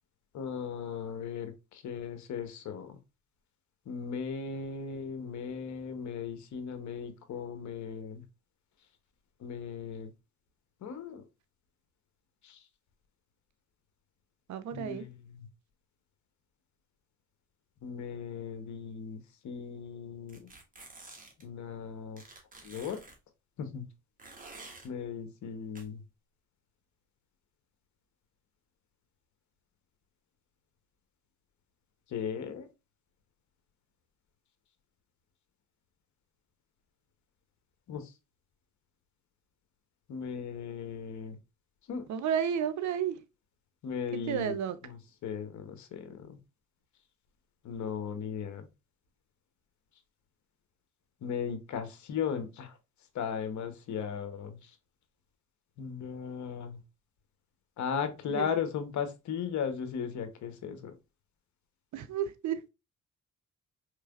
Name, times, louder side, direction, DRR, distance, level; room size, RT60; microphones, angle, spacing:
voice 1, 0.3-3.0 3.9-8.2 9.4-10.1 10.8-11.2 12.4-12.6 14.7-15.5 17.8-20.5 21.4-22.2 22.6-23.0 23.6-23.8 24.8-26.0 32.1-32.7 37.9-38.1 40.1-41.4 41.9-42.0 43.8-44.6 44.8-46.4 47.6-48.7 51.2-52.8 53.1-54.8 55.8-56.8 57.8-61.0, left 7 dB, 70° left, 1.0 m, -37 dB
voice 2, 14.5-15.0 42.1-43.2 44.3-44.7 58.3-58.4 61.9-62.7, right 8 dB, 70° right, 0.6 m, -31 dB
sound 1, 20.3-21.4 22.2-23.2 24.2-24.9 25.8-25.9, right 3 dB, 30° right, 1.4 m, -50 dB
4.6 x 3.2 x 2.3 m
cardioid pair, 90°, 30 cm